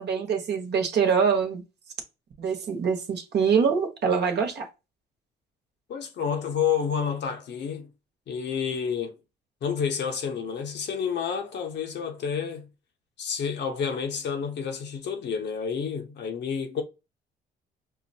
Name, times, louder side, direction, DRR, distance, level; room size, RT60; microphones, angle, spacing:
voice 1, 0.0-1.6 2.4-4.7, right 6 dB, 55° right, 1.1 m, -24 dB
voice 2, 5.9-7.9 8.3-9.2 9.6-12.7 13.2-16.8, left 7 dB, 60° left, 0.9 m, -29 dB
5.6 x 2.1 x 2.7 m
supercardioid pair, 60°, 20 cm